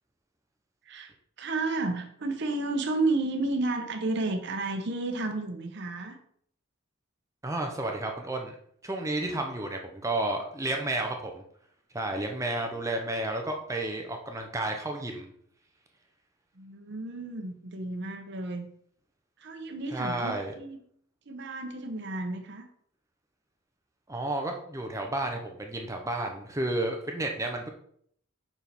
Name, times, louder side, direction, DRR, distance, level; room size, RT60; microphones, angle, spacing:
voice 1, 1.4-6.2 9.2-9.4 16.5-18.7 19.4-20.8 21.3-22.7, right 2 dB, 55° right, 5 dB, 0.8 m, -32 dB
voice 2, 7.4-8.5 8.8-11.4 11.9-15.3 19.9-20.5 24.1-27.7, right 2 dB, 15° right, 3 dB, 0.6 m, -31 dB
5.8 x 4.7 x 3.4 m, 0.64 s
head